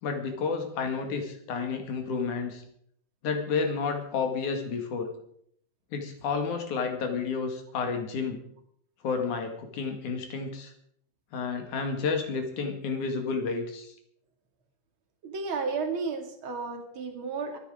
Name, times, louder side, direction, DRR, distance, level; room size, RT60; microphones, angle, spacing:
voice 1, 0.0-2.6 3.2-5.1 5.9-8.4 9.0-10.7 11.3-13.9, left 5 dB, 50° left, 5 dB, 3.1 m, -31 dB
voice 2, 15.2-17.6, right 4 dB, 35° right, 4 dB, 2.5 m, -32 dB
24.5 x 9.9 x 5.0 m, 0.68 s
omnidirectional pair, 5.0 m